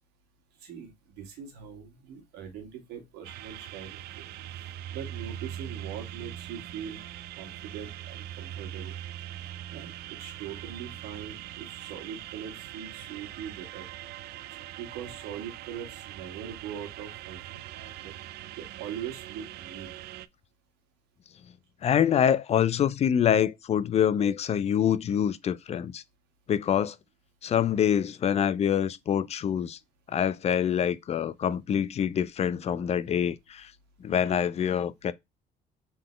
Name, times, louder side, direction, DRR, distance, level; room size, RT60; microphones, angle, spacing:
voice 1, 0.6-7.0 7.4-8.9 9.4-13.9 14.7-18.1 18.5-19.9, right 8 dB, 90° right, 1.8 m, -42 dB
sound 1, 3.2-20.3, right 12 dB, 70° right, 0.4 m, -42 dB
voice 2, 21.8-26.0 26.5-27.0 27.4-29.8 30.1-33.7 34.0-35.1, left 9 dB, 40° left, 0.4 m, -25 dB
3.9 x 3.8 x 3.1 m
cardioid pair, 110°, 17 cm